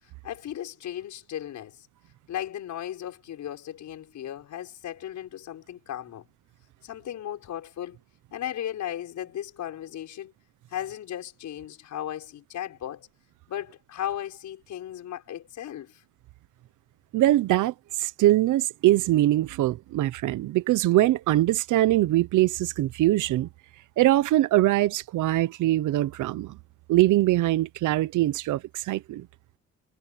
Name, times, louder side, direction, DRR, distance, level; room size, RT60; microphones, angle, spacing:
voice 1, 0.2-1.9 2.3-6.2 6.8-8.0 8.3-10.3 10.7-13.1 13.5-16.0, left 11 dB, 70° left, 5.9 m, -36 dB
voice 2, 17.1-23.5 24.0-26.6 26.9-29.3, right 15 dB, 85° right, 0.9 m, -22 dB
cardioid pair, 90°, 30 cm